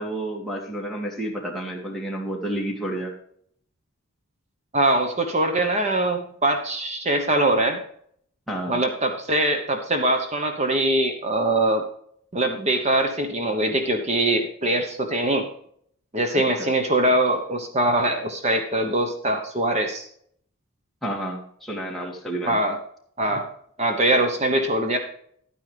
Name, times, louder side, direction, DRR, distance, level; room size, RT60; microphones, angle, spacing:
voice 1, 0.0-3.1 8.5-8.8 16.6-16.7 21.0-22.6, right 1 dB, ahead, -3 dB, 2.3 m, -30 dB
voice 2, 4.7-7.8 8.7-11.9 12.3-15.5 16.1-20.1 22.5-22.8 23.2-23.5 23.8-25.0, right 1 dB, 30° right, 5 dB, 1.0 m, -22 dB
11.5 x 9.6 x 3.4 m, 0.64 s
head